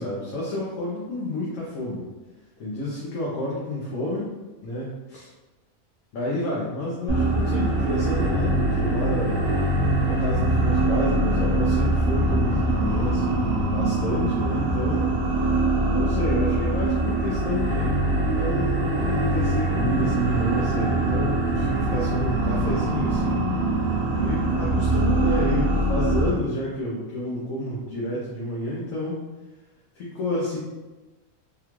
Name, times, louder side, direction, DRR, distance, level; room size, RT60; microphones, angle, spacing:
voice 1, 0.0-2.0 2.6-4.3 4.6-5.3 6.1-9.4 10.0-15.1 15.9-23.4 24.1-29.3 30.0-30.6, left 1 dB, 75° left, -6 dB, 1.1 m, -30 dB
sound 1, 7.1-26.3, right 2 dB, 25° right, 0.9 m, -23 dB
3.6 x 2.3 x 3.0 m, 1.2 s
omnidirectional pair, 1.4 m